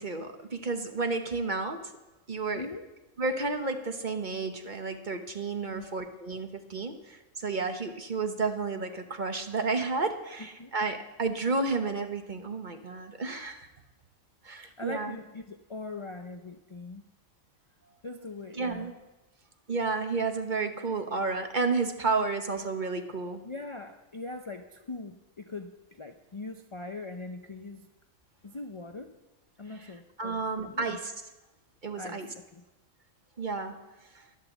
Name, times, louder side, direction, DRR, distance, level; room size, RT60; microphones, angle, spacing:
voice 1, 0.0-1.8 2.3-2.6 3.2-13.7 14.4-15.2 18.6-18.9 19.7-23.4 30.2-31.1 31.8-32.3 33.4-33.7 34.1-34.2, right 4 dB, 40° right, 6 dB, 1.1 m, -31 dB
voice 2, 2.5-2.9 5.6-6.0 10.6-10.7 14.6-17.0 18.0-18.9 23.4-27.9 28.4-29.1 29.6-31.0 32.0-32.6, left 3 dB, 35° left, 6 dB, 0.5 m, -41 dB
11.5 x 11.5 x 7.2 m, 1.1 s
omnidirectional pair, 1.4 m